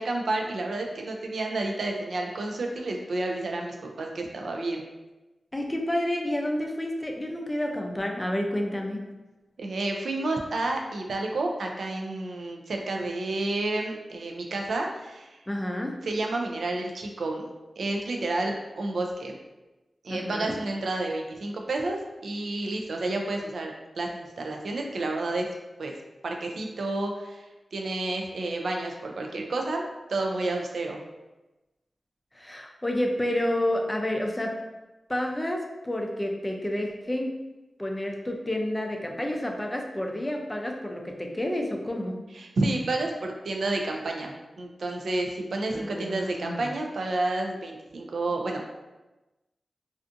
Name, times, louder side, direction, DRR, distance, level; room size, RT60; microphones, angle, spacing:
voice 1, 0.0-4.8 9.6-15.4 16.0-17.5 17.8-19.4 20.0-25.5 25.8-25.9 26.2-27.4 27.7-31.0 42.3-48.7, right 2 dB, 80° right, 1 dB, 0.3 m, -30 dB
voice 2, 5.5-9.0 15.5-16.0 20.1-20.5 32.3-34.6 35.1-37.3 37.8-42.2 45.7-46.7, left 1 dB, 15° left, 2 dB, 0.4 m, -29 dB
2.4 x 2.4 x 2.5 m, 1.1 s
wide cardioid pair, 75°, 0 cm